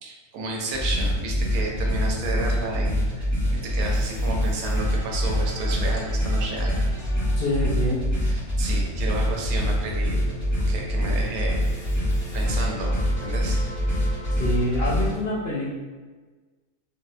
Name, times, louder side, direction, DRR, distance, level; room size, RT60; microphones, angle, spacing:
voice 1, 0.0-6.8 8.2-11.6 12.3-13.6, right 2 dB, 90° right, -1 dB, 1.1 m, -32 dB
sound 1, 0.7-15.2, equal, 15° left, 0.4 m, -25 dB
voice 2, 7.4-8.1 14.3-15.8, left 1 dB, 70° left, -5 dB, 0.5 m, -26 dB
Telephone, 9.4-14.4, right 4 dB, 75° right, 0.4 m, -46 dB
3.3 x 2.0 x 2.5 m, 1.3 s
omnidirectional pair, 1.5 m